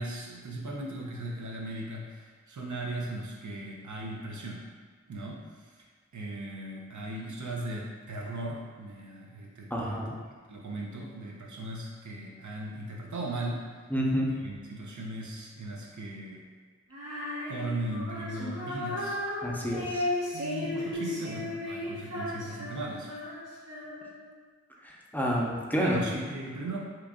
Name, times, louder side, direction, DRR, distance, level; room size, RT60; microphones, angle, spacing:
voice 1, 0.0-4.6 5.1-5.9 6.1-10.0 10.5-13.8 14.4-16.4 17.5-19.2 20.3-23.1 25.8-26.8, right 1 dB, 90° right, -2 dB, 0.6 m, -37 dB
voice 2, 9.7-10.1 13.9-14.4 19.4-20.1 24.8-26.0, equal, 5° left, -4 dB, 0.6 m, -29 dB
Female singing, 16.9-24.3, left 1 dB, 60° right, 0.9 m, -35 dB
2.9 x 2.4 x 3.5 m, 1.6 s
wide cardioid pair, 45°, 29 cm